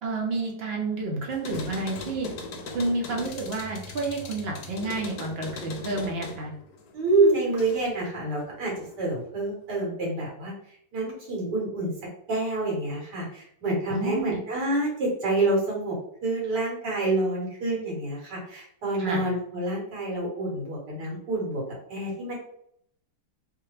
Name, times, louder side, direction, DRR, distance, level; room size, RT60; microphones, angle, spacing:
voice 1, 0.0-2.3 2.7-6.5 13.9-14.4 19.0-19.2, right 2 dB, 50° right, 0 dB, 0.8 m, -30 dB
sound 1, 1.3-8.0 8.4-9.2, left 3 dB, 70° left, 1.1 m, -40 dB
voice 2, 6.9-10.5 10.9-11.9 12.3-16.0 16.2-21.6 21.9-22.3, right 2 dB, 80° right, -3 dB, 1.9 m, -27 dB
3.6 x 2.2 x 3.2 m, 0.68 s
omnidirectional pair, 1.8 m